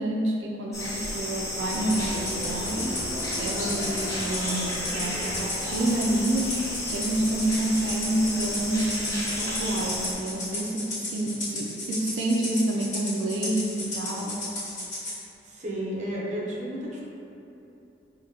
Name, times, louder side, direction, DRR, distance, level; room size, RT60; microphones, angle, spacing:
voice 1, 0.0-2.9 3.4-14.4, right 1 dB, 85° right, -2 dB, 0.3 m, -28 dB
sound 1, 0.7-10.1, left 1 dB, 15° left, 0.5 m, -33 dB
sound 2, 1.7-6.8, equal, 90° left, 0.7 m, -38 dB
Rattle (instrument), 1.7-15.2, left 1 dB, 40° left, 1.0 m, -34 dB
voice 2, 15.4-17.0, equal, 40° right, -5 dB, 0.6 m, -32 dB
4.7 x 2.1 x 2.7 m, 2.8 s
head